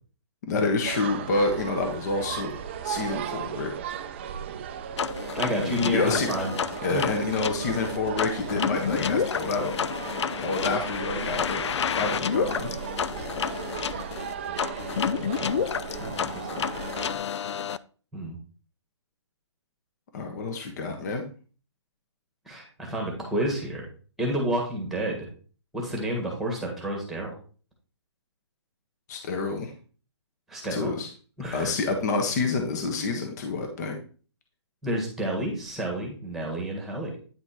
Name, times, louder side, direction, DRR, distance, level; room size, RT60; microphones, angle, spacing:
voice 1, 0.5-2.5 2.8-3.7 5.6-6.5 6.8-9.7 10.4-11.6 11.9-12.7 20.1-21.2 29.1-29.7 30.7-31.1 31.5-34.0, left 3 dB, 35° left, 4 dB, 1.3 m, -28 dB
sound 1, 0.8-17.2, right 8 dB, 25° right, 0.5 m, -36 dB
sound 2, 5.0-17.8, left 7 dB, 70° left, 0.5 m, -30 dB
voice 2, 5.3-6.5 6.9-7.1 16.0-16.6 18.1-18.4 22.4-23.9 24.2-25.3 25.7-27.3 30.5-30.9 31.4-31.7 34.8-37.1, right 1 dB, ahead, 0 dB, 1.7 m, -30 dB
9.5 x 4.3 x 4.2 m, 0.39 s
hypercardioid pair, 165°, 15 cm